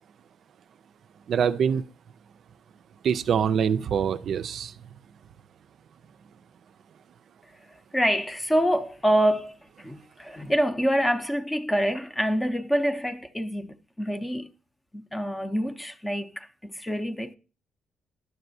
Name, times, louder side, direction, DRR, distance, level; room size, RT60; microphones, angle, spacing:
voice 1, 1.3-1.8 3.0-4.7, right 7 dB, 65° right, 0.3 m, -24 dB
voice 2, 7.7-14.5 14.9-17.3, equal, 10° left, 0.6 m, -26 dB
11.0 x 6.6 x 2.6 m
cardioid pair, 90°, 0 cm